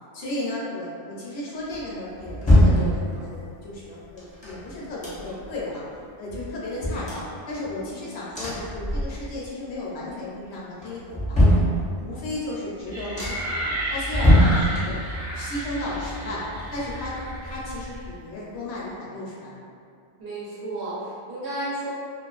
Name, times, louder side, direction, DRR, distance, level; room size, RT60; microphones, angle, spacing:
voice 1, 0.1-5.8 6.2-11.6 12.0-15.0 15.3-16.5 16.7-17.2 17.4-19.6, left 1 dB, 70° left, -6 dB, 0.8 m, -34 dB
sound 1, 1.7-3.5 4.2-5.6 5.9-6.0 6.3-7.9 8.3-9.5 9.8-10.3 10.8-12.3 12.7-12.8 13.1-13.6 14.0-15.3 15.5-17.4 17.7-17.8, equal, 10° left, 0.5 m, -23 dB
sound 2, 12.9-18.1, equal, 40° right, 0.7 m, -32 dB
voice 2, 20.2-21.9, right 1 dB, 70° right, -8 dB, 0.9 m, -32 dB
2.4 x 2.2 x 2.3 m, 2.4 s
omnidirectional pair, 1.2 m